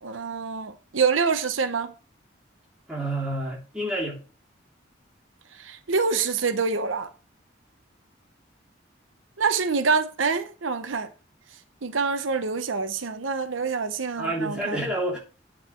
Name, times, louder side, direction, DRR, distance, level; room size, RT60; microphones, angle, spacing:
voice 1, 0.0-1.9 5.5-7.1 9.4-11.1 11.8-14.8, right 5 dB, 85° right, 0.9 m, -26 dB
voice 2, 2.9-4.2 14.2-15.2, right 1 dB, 5° right, 3.4 m, -29 dB
9.0 x 4.9 x 6.0 m
head